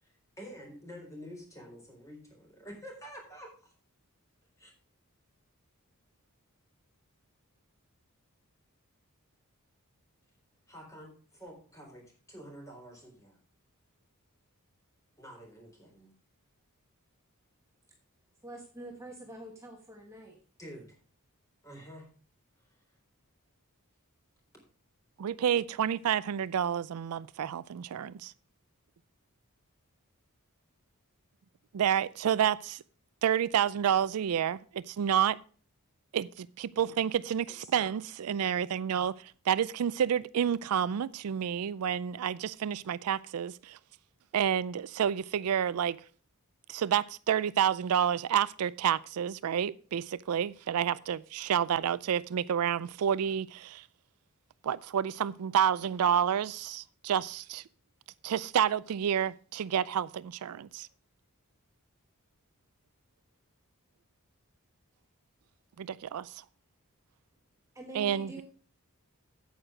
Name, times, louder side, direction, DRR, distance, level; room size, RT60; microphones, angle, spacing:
voice 1, 0.0-3.7 4.6-4.7 10.7-13.4 15.2-16.2 20.6-20.9 21.6-22.1 22.6-22.7 37.6-37.9, equal, 15° left, 3.9 m, -48 dB
voice 2, 18.4-20.4 67.7-68.4, right 1 dB, 15° right, 1.4 m, -45 dB
voice 3, 25.2-28.3 31.7-32.8 33.2-35.4 36.1-39.1 39.5-43.8 44.3-46.0 46.7-53.9 54.6-57.6 58.2-60.9 65.8-66.4 67.9-68.4, right 9 dB, 80° right, 0.4 m, -29 dB
9.0 x 8.0 x 4.9 m
head